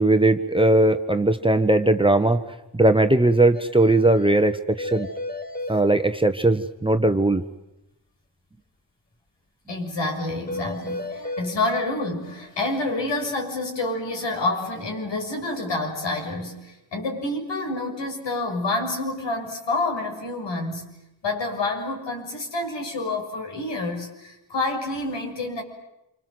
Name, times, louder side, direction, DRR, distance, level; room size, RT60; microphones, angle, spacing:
voice 1, 0.0-2.4 2.7-5.1 5.7-7.4, right 2 dB, 10° right, 7 dB, 1.3 m, -19 dB
sound 1, 3.5-3.6 3.9-4.0 4.3-4.4 4.8-5.8 10.5-11.5, left 2 dB, 20° left, 2.1 m, -32 dB
voice 2, 9.7-20.9 21.2-25.6, left 2 dB, 70° left, 3 dB, 6.9 m, -28 dB
28.0 x 25.0 x 8.0 m, 0.91 s
cardioid pair, 100°, 45 cm